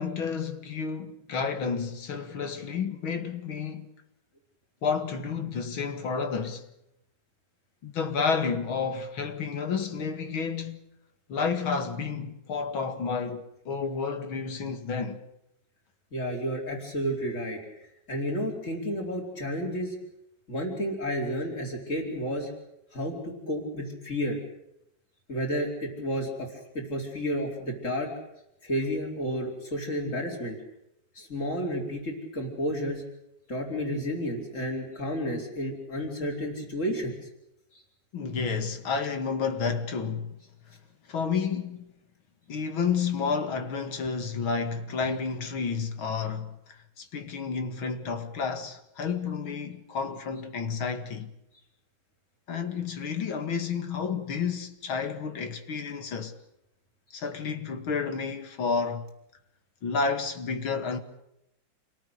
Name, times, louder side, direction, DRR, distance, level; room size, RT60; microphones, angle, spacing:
voice 1, 0.0-3.9 4.8-6.7 7.8-10.8 11.3-15.2 38.1-40.4 41.1-41.9 42.5-51.3 52.5-56.4 57.1-59.1 59.8-61.0, left 5 dB, 80° left, 2.8 m, -30 dB
voice 2, 16.1-17.6 18.1-20.0 20.5-22.5 22.9-24.4 25.3-28.1 28.6-30.6 31.2-33.0 33.5-37.2, equal, 35° left, 5.3 m, -31 dB
28.5 x 18.0 x 8.2 m
omnidirectional pair, 2.2 m